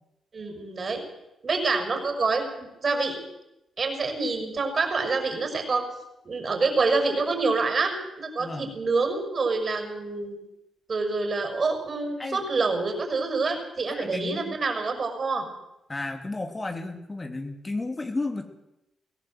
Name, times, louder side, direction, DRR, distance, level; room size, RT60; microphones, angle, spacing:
voice 1, 0.3-1.0 1.4-3.2 3.8-5.8 6.2-10.4 10.9-15.4, right 3 dB, 45° right, 5 dB, 6.5 m, -27 dB
voice 2, 13.9-14.5 15.9-18.5, left 2 dB, 30° left, 5 dB, 3.1 m, -33 dB
22.0 x 17.0 x 8.0 m, 0.89 s
hypercardioid pair, 45°, 0 cm